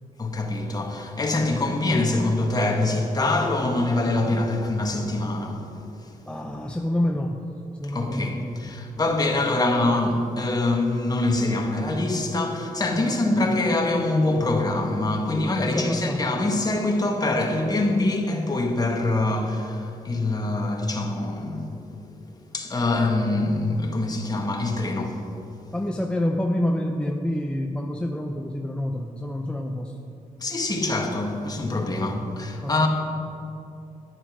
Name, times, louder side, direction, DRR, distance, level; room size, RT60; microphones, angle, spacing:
voice 1, 0.2-6.1 7.8-21.7 22.5-25.7 30.4-32.9, left 2 dB, 25° left, 1.5 m, -24 dB
voice 2, 6.3-7.4 7.8-8.8 13.2-13.4 15.7-16.4 25.7-30.0 31.9-32.3 32.6-32.9, left 1 dB, 5° left, 0.6 m, -28 dB
10.5 x 9.7 x 5.0 m
cardioid pair, 100°, 15 cm